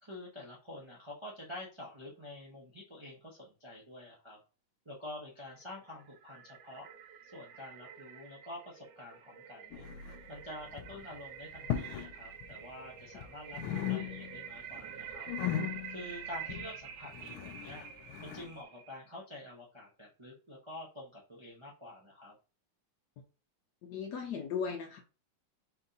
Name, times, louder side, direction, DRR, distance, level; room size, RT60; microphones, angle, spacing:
voice 1, 0.0-4.4 4.8-6.9 7.2-9.9 10.3-15.3 15.9-17.9 18.2-22.4, left 1 dB, 35° right, 0.4 m, -48 dB
sound 1, 5.6-19.0, right 8 dB, 80° right, 1.4 m, -48 dB
sound 2, 9.7-10.4 10.7-11.0 11.6-12.1 12.4-13.3 13.5-14.5 14.8-18.5, left 10 dB, 85° left, 1.5 m, -38 dB
voice 2, 23.8-25.0, left 6 dB, 70° left, 1.0 m, -37 dB
4.4 x 2.8 x 3.9 m
omnidirectional pair, 2.3 m